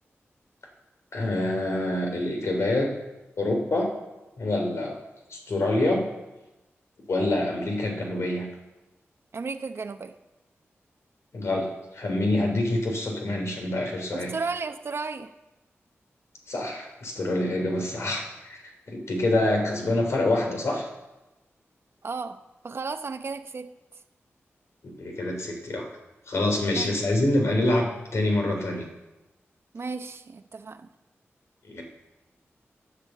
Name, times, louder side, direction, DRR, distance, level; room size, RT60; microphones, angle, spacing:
voice 1, 1.1-2.9 3.4-3.9 4.4-5.0 5.3-6.0 7.1-8.5 11.3-14.3 16.5-20.9 24.8-25.9 26.3-28.9 31.6-31.8, left 1 dB, 70° left, 2 dB, 3.3 m, -26 dB
voice 2, 9.3-10.2 14.1-15.3 19.0-19.1 22.0-24.0 26.7-26.9 29.7-30.9, right 4 dB, 60° right, 8 dB, 0.8 m, -34 dB
10.0 x 9.0 x 7.7 m, 1.0 s
wide cardioid pair, 85°, 5 cm